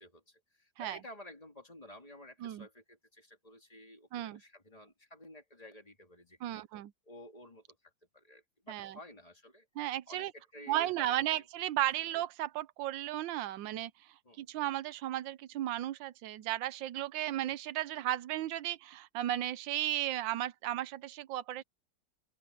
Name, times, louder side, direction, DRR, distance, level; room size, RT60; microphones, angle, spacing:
voice 1, 0.0-6.7 7.0-9.7 10.1-11.4 11.9-12.1 14.2-14.4, left 1 dB, 20° left, 2.9 m, -53 dB
voice 2, 6.4-6.9 8.7-9.0 9.8-10.3 10.7-13.9 14.4-21.6, right 13 dB, 80° right, 1.4 m, -35 dB
open air
omnidirectional pair, 2.0 m